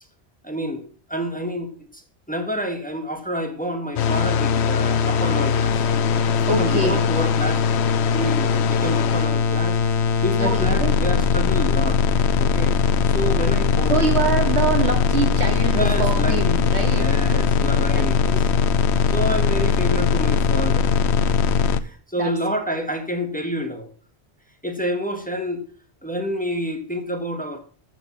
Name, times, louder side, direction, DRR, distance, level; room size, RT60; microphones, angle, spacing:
voice 1, 0.4-0.8 1.1-2.0 2.3-5.8 6.4-9.8 10.2-12.0 12.4-12.8 13.1-14.0 15.7-18.2 19.1-21.0 21.7-23.9 24.6-25.6 26.0-27.6, equal, 10° left, 5 dB, 1.5 m, -28 dB
sound 1, 4.0-21.8, left 6 dB, 85° left, 1.0 m, -20 dB
voice 2, 6.3-7.0 10.4-11.0 13.9-18.6 22.2-22.4 22.7-22.9, right 4 dB, 85° right, 4 dB, 2.3 m, -25 dB
13.5 x 5.2 x 7.2 m, 0.43 s
omnidirectional pair, 1.1 m